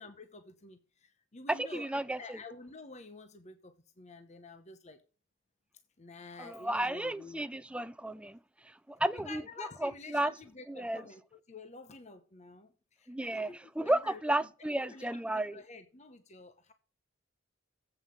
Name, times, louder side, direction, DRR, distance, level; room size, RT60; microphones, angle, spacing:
voice 1, 0.0-5.0 6.0-7.4 9.1-14.2 14.6-16.7, left 3 dB, 35° left, 0.9 m, -49 dB
voice 2, 1.5-2.4 6.4-8.4 8.6-9.4 9.8-10.3 10.7-11.0 13.1-13.5 13.8-15.6, right 1 dB, 5° right, 0.4 m, -33 dB
8.1 x 5.5 x 7.3 m
head